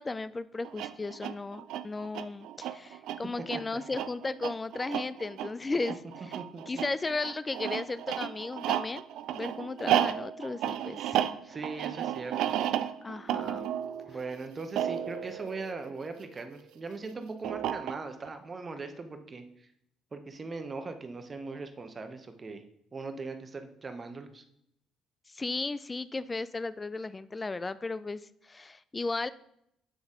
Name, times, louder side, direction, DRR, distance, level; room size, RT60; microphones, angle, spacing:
voice 1, 0.0-6.0 6.3-6.4 6.7-9.0 9.3-11.2 13.0-13.7 25.3-29.3, left 3 dB, 25° left, 15 dB, 0.3 m, -35 dB
sound 1, 0.6-16.4 17.4-18.3, right 11 dB, 75° right, 0.3 m, -33 dB
voice 2, 11.4-12.6 14.1-19.4 20.1-22.6 22.9-24.4, right 3 dB, 30° right, 7 dB, 0.9 m, -40 dB
7.9 x 3.9 x 3.6 m, 0.76 s
supercardioid pair, 80°, 0 cm